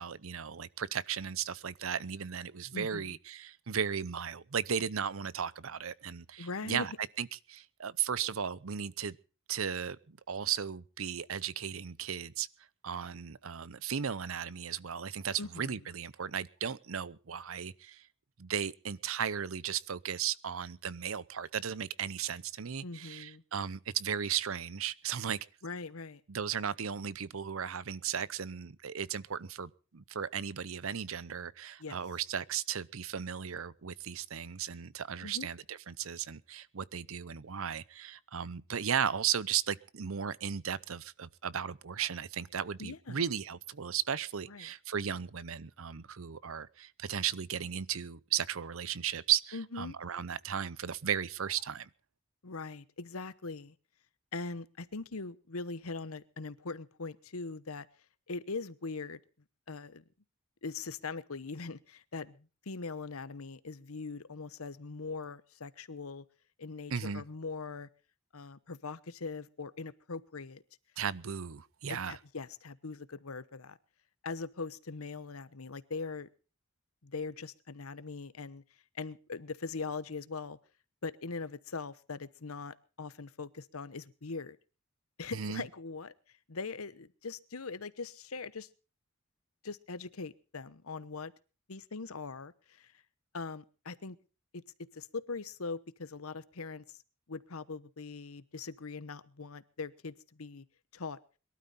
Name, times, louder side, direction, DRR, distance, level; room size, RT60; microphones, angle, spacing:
voice 1, 0.0-6.9 7.2-9.2 9.5-12.5 12.8-18.0 18.4-25.4 26.3-51.9 66.9-67.2 71.0-72.2 85.3-85.6, right 8 dB, 70° right, 0.7 m, -36 dB
voice 2, 2.7-3.2 6.4-6.9 15.4-15.8 22.8-23.4 25.6-26.2 31.8-32.0 35.2-35.5 42.8-43.2 44.5-44.7 49.5-49.9 52.4-53.7 54.3-57.9 58.3-59.2 59.7-60.0 60.6-66.2 66.6-67.9 68.3-70.6 71.9-73.8 74.2-76.3 77.0-78.6 78.9-80.6 81.0-84.6 85.2-86.1 86.5-88.7 89.6-91.3 91.7-92.9 93.3-94.2 94.5-94.6 94.9-97.0 97.3-100.6 100.9-101.2, left 4 dB, 85° left, 1.0 m, -41 dB
22.5 x 12.5 x 4.2 m
head